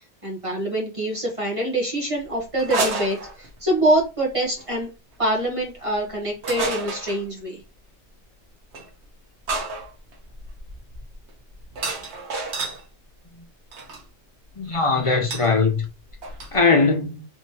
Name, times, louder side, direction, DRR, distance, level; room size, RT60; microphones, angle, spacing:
voice 1, 0.2-4.9 5.2-7.6, right 1 dB, 30° right, 1.0 m, -25 dB
sound 1, 2.6-3.8 4.6-4.8 6.4-7.2 8.7-8.9 9.5-12.8 13.7-14.0 15.3-15.5 15.8-15.9 16.1-16.6, right 3 dB, 75° right, 1.3 m, -30 dB
voice 2, 14.6-15.9 16.5-17.3, left 4 dB, 45° left, 0.4 m, -20 dB
3.5 x 3.0 x 2.8 m
omnidirectional pair, 1.1 m